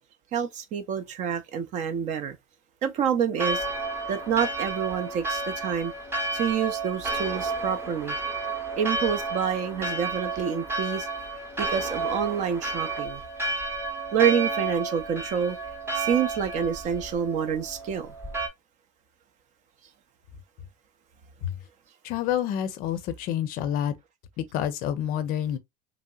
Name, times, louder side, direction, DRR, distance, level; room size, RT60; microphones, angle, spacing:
voice 1, 0.3-2.4 2.8-3.6 4.1-5.9 6.3-8.2 8.8-11.1 11.6-13.2 14.1-15.6 15.9-18.1, right 7 dB, 40° right, 0.5 m, -27 dB
Church bell, 3.4-18.5, right 3 dB, 15° right, 0.8 m, -31 dB
voice 2, 22.0-23.9 24.4-25.6, left 10 dB, 50° left, 0.5 m, -28 dB
3.0 x 2.7 x 2.2 m
supercardioid pair, 135°, 19 cm